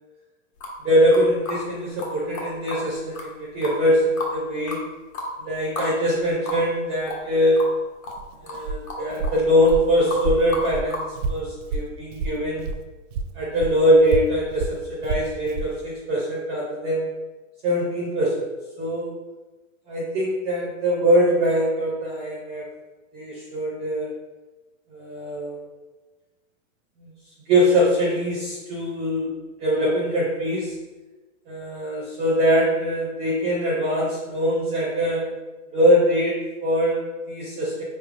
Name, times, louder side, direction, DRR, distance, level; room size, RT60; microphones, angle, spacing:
sound 1, 0.6-0.8 1.1-1.6 2.0-2.1 2.3-2.8 3.1-3.2 3.6-4.4 4.7-4.8 5.1-5.3 5.8-5.9 6.2-6.3 6.5-6.6 7.1-7.3 7.6-7.7 8.0-8.2 8.5-8.6 8.9-9.4 9.6-9.8 10.1-10.2 10.5-11.1, left 2 dB, 80° left, 1.5 m, -32 dB
voice 1, 0.8-4.9 5.4-7.7 8.4-12.7 13.3-17.1 17.6-18.5 18.8-19.1 19.9-22.6 23.1-24.1 24.9-25.6 27.0-27.1 27.5-29.3 29.6-30.8 31.5-35.4 35.7-37.8, equal, 15° right, -4 dB, 0.4 m, -22 dB
Walk footsteps, 8.1-12.8 13.1-15.7, right 4 dB, 70° right, 0.6 m, -30 dB
5.4 x 3.3 x 2.4 m, 1.2 s
hypercardioid pair, 145°, 40 cm